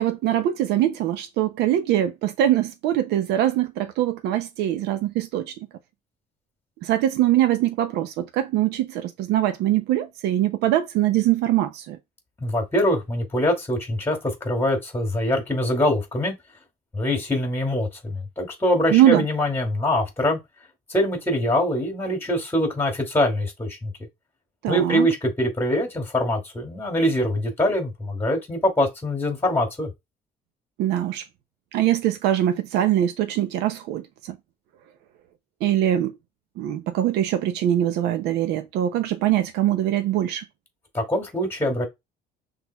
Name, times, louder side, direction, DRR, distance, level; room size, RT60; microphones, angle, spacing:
voice 1, 0.0-5.5 6.8-12.0 18.9-19.2 24.6-25.1 30.8-31.2 31.7-34.1 35.6-36.1 36.6-40.4, right 12 dB, 90° right, 0.6 m, -22 dB
voice 2, 12.4-14.2 14.4-16.3 16.9-20.4 20.9-23.9 24.7-29.9 40.9-41.9, left 1 dB, 15° left, 2.5 m, -23 dB
6.1 x 3.4 x 2.3 m
cardioid pair, 110°, 17 cm